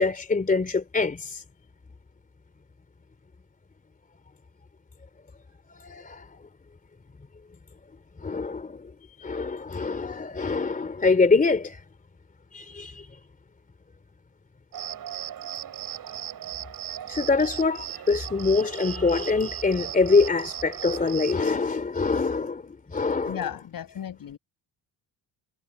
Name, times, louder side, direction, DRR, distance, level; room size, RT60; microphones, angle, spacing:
voice 1, 0.0-1.4 5.7-6.4 8.2-8.9 9.2-11.8 12.5-13.1 17.1-23.4, left 4 dB, 20° left, 3.2 m, -24 dB
Cricket, 14.7-21.5, right 10 dB, 55° right, 4.9 m, -37 dB
voice 2, 23.2-24.4, left 9 dB, 55° left, 6.1 m, -34 dB
cardioid pair, 150°, 41 cm